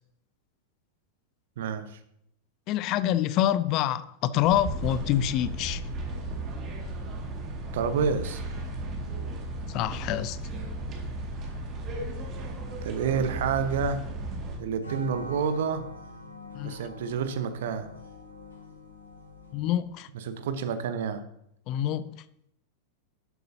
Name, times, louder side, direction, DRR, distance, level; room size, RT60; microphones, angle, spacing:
voice 1, 1.6-2.0 7.7-8.4 12.8-14.0 14.6-15.9 16.6-17.9 20.1-21.2, right 6 dB, 55° right, 0.9 m, -29 dB
voice 2, 2.7-5.8 9.7-10.4 16.5-16.8 19.5-20.1 21.7-22.2, left 12 dB, 40° left, 0.4 m, -26 dB
sound 1, 4.4-14.6, right 2 dB, 30° right, 2.0 m, -35 dB
sound 2, 14.8-20.0, left 2 dB, 75° left, 3.9 m, -44 dB
11.5 x 7.8 x 2.7 m
figure-of-eight pair, 90°, 0 cm